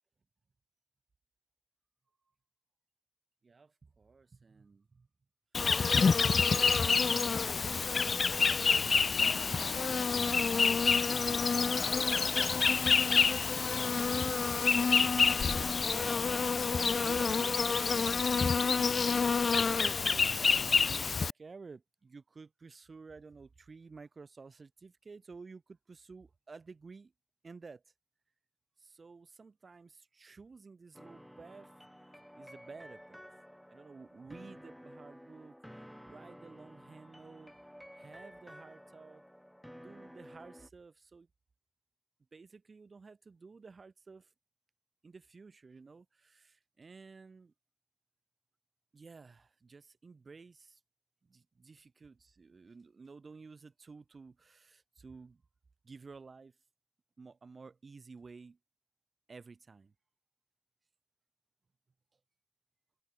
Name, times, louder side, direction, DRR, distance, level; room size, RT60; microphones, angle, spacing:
voice 1, 3.4-5.1 8.4-9.0 9.6-12.4 14.0-14.5 15.0-18.6 19.7-27.1 27.4-27.8 28.8-31.7 32.3-33.3 33.7-37.5 37.9-39.2 39.8-41.3 42.3-44.3 45.0-47.5 48.9-50.8 51.2-55.4 55.8-56.6 57.2-58.6 59.3-59.9, right 4 dB, 60° right, 3.1 m, -53 dB
Insect, 5.5-21.3, left 5 dB, 75° left, 0.5 m, -28 dB
sound 1, 30.9-40.7, equal, ahead, 7.1 m, -53 dB
wide cardioid pair, 115°, 0 cm